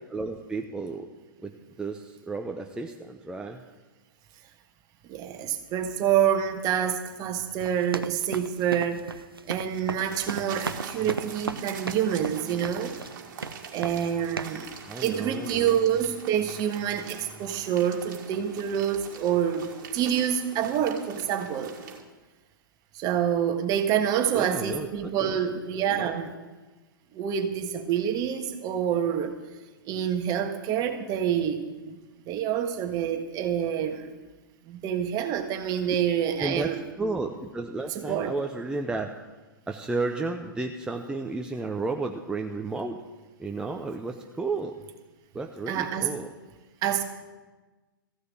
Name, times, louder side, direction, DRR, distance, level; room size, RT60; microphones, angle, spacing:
voice 1, 0.1-1.1 1.4-3.6 14.8-15.8 24.3-25.4 25.7-26.1 35.9-36.0 36.4-39.1 39.7-43.0 43.4-44.7 45.3-46.3, right 3 dB, 5° right, 2 dB, 0.7 m, -33 dB
voice 2, 5.1-9.1 9.4-12.9 13.7-14.7 15.0-19.7 19.9-21.8 22.9-26.3 27.1-29.3 29.8-32.0 32.3-34.1 34.7-36.8 37.9-38.3 45.7-46.1 46.8-47.0, right 9 dB, 35° right, 6 dB, 1.5 m, -27 dB
sound 1, 7.6-13.2 13.4-14.1 14.4-14.7, right 4 dB, 90° right, 0.6 m, -35 dB
sound 2, 10.0-22.0, right 6 dB, 55° right, 2.0 m, -43 dB
14.5 x 6.6 x 8.9 m, 1.2 s
figure-of-eight pair, 110°, 12 cm